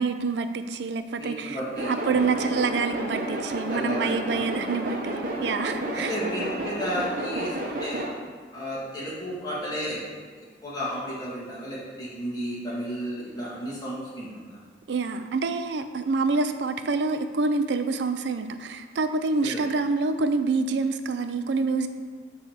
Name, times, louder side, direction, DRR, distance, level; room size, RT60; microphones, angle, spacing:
voice 1, 0.0-6.2 14.9-21.9, right 4 dB, 80° right, 9 dB, 0.4 m, -27 dB
voice 2, 1.2-2.2 3.7-4.5 5.7-8.0 8.5-10.0 10.6-14.4 19.4-19.6, equal, 20° left, -7 dB, 2.0 m, -33 dB
sound 1, 1.8-8.1, right 1 dB, 50° right, 0.9 m, -31 dB
7.6 x 3.4 x 6.5 m, 1.5 s
head